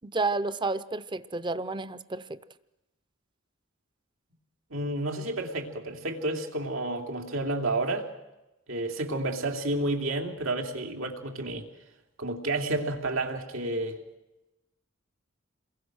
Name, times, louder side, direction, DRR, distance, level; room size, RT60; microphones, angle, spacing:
voice 1, 0.0-2.4, right 3 dB, 25° right, 0.7 m, -31 dB
voice 2, 4.7-8.1 8.7-11.7 12.2-14.0, right 2 dB, 90° right, 3.1 m, -30 dB
28.0 x 22.0 x 6.4 m
head